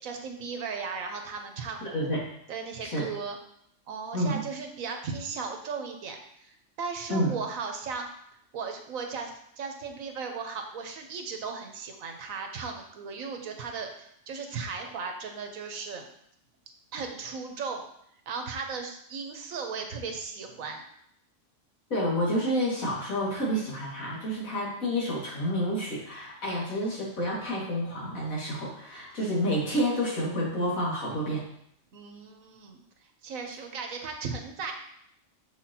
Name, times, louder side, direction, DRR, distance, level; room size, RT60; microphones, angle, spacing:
voice 1, 0.0-1.9 2.5-3.4 3.9-8.1 8.5-16.0 16.9-17.8 18.3-20.8 31.9-32.8 33.2-34.7, right 5 dB, 90° right, 4 dB, 1.3 m, -36 dB
voice 2, 1.8-2.2 2.8-3.1 4.1-4.4 7.1-7.3 21.9-31.5, equal, 90° left, -5 dB, 2.5 m, -29 dB
6.7 x 6.0 x 2.9 m, 0.71 s
omnidirectional pair, 1.4 m